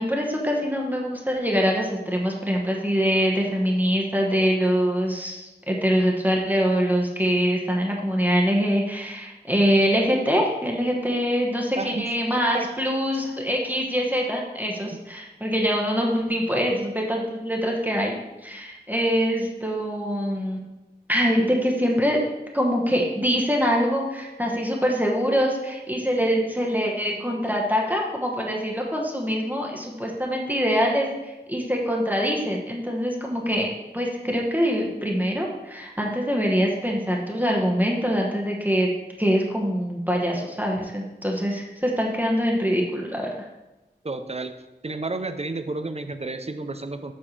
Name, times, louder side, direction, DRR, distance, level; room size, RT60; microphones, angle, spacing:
voice 1, 0.0-18.2 18.4-20.6 21.1-22.2 22.5-33.7 33.9-38.9 39.2-43.3, equal, 10° right, -1 dB, 1.2 m, -24 dB
voice 2, 44.0-44.5 44.8-47.1, right 3 dB, 35° right, 9 dB, 0.6 m, -31 dB
7.4 x 5.5 x 3.3 m, 1.0 s
wide cardioid pair, 40°, 18 cm